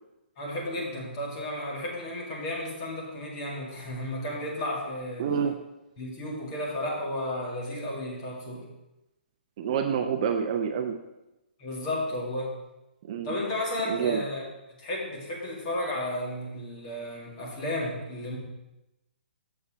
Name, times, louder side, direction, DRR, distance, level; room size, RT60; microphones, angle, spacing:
voice 1, 0.4-5.3 6.0-8.7 11.6-12.6 13.2-14.4 14.7-18.4, left 1 dB, 30° left, -2 dB, 2.1 m, -33 dB
voice 2, 5.2-5.5 9.6-11.0 13.0-13.3 13.9-14.2, right 7 dB, 35° right, 5 dB, 0.5 m, -27 dB
6.8 x 4.8 x 6.2 m, 0.96 s
hypercardioid pair, 165°, 6 cm